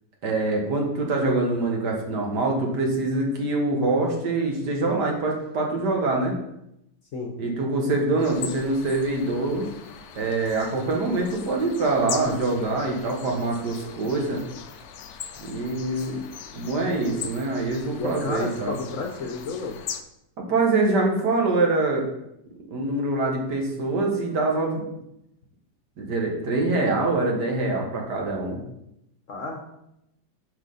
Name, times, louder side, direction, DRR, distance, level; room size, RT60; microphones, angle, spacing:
voice 1, 0.2-6.4 7.4-9.7 10.2-14.4 15.4-16.2 16.5-18.8 20.4-22.1 22.7-24.9 26.0-28.6, right 2 dB, 70° right, 0 dB, 2.0 m, -24 dB
sound 1, 8.2-20.0, left 8 dB, 85° left, 0.6 m, -40 dB
voice 2, 18.0-19.8 29.3-29.6, left 4 dB, 55° left, 2 dB, 1.0 m, -31 dB
8.0 x 6.1 x 4.1 m, 0.81 s
omnidirectional pair, 2.0 m